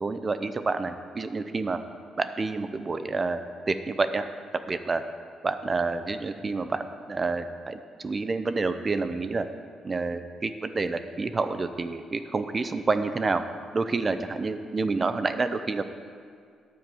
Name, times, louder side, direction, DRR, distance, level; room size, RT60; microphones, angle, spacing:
voice 1, 0.0-1.8 2.2-4.2 4.7-5.0 5.4-9.4 9.8-13.4 13.7-15.8, right 3 dB, 30° right, 9 dB, 0.5 m, -28 dB
9.6 x 5.2 x 7.6 m, 2.2 s
cardioid pair, 90°, 0 cm